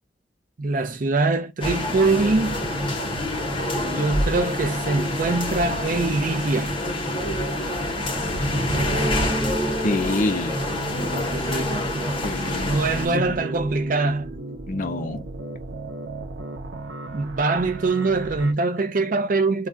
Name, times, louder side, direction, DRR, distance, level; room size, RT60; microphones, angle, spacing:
voice 1, 0.6-2.6 3.7-6.8 11.1-12.2 12.7-14.3 17.1-19.7, right 3 dB, 50° right, 0.5 m, -23 dB
sound 1, 1.6-13.1, left 1 dB, 30° left, 0.9 m, -26 dB
sound 2, 8.9-14.9, right 1 dB, 10° right, 1.2 m, -34 dB
voice 2, 9.8-10.6 12.2-12.8 13.1-13.3 14.7-15.3, left 2 dB, 45° left, 0.5 m, -26 dB
sound 3, 10.5-18.5, right 2 dB, 85° right, 0.7 m, -36 dB
2.3 x 2.3 x 3.7 m
head